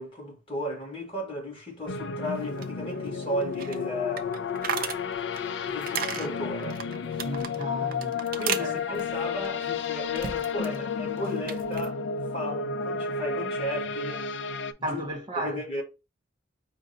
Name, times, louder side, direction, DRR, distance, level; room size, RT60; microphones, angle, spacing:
voice 1, 0.0-4.5 5.6-6.8 8.3-12.0 12.3-14.3 14.8-15.0 15.4-15.8, equal, 30° left, 1.4 m, -34 dB
sound 1, 1.9-14.7, left 5 dB, 60° left, 0.3 m, -32 dB
sound 2, 2.2-10.8 11.1-11.9, right 7 dB, 45° right, 0.4 m, -37 dB
voice 2, 7.2-8.1 8.6-9.0 14.8-15.6, right 1 dB, 25° right, 0.8 m, -33 dB
5.0 x 2.0 x 3.9 m
head